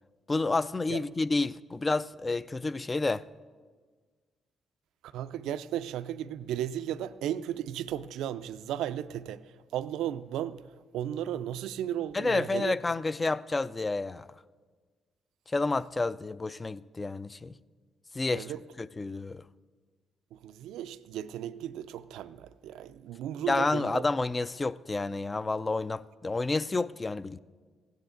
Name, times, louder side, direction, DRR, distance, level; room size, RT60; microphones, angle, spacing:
voice 1, 0.3-3.2 12.1-14.3 15.5-17.5 18.1-18.5 18.8-19.4 23.5-27.4, left 3 dB, 25° left, 0.3 m, -30 dB
voice 2, 5.0-12.7 18.3-18.6 20.3-24.0, right 11 dB, 85° right, 0.4 m, -35 dB
16.0 x 9.3 x 3.8 m
cardioid pair, 90°, 0 cm